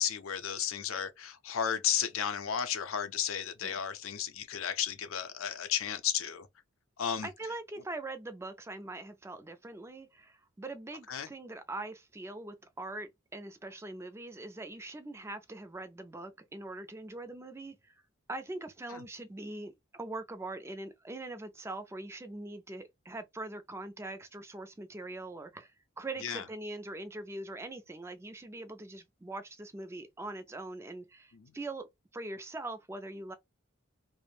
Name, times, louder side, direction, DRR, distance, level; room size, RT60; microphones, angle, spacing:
voice 1, 0.0-6.5 7.0-7.3 11.1-11.3 18.9-19.0 26.2-26.4 31.3-31.5, left 9 dB, 80° left, 0.5 m, -33 dB
voice 2, 7.2-17.9 18.3-31.9 32.1-33.3, right 2 dB, 15° right, 0.3 m, -42 dB
2.4 x 2.0 x 3.1 m
head